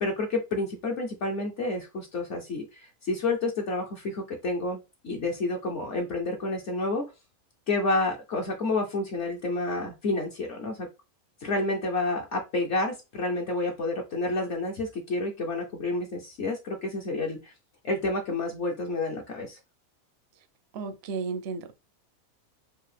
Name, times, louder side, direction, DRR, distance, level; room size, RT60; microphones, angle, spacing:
voice 1, 0.0-4.8 5.0-7.1 7.7-10.9 11.4-17.5 17.8-19.6, left 2 dB, 60° left, 1.0 m, -29 dB
voice 2, 20.7-21.7, right 5 dB, 60° right, 0.8 m, -33 dB
4.6 x 2.6 x 3.3 m
omnidirectional pair, 1.5 m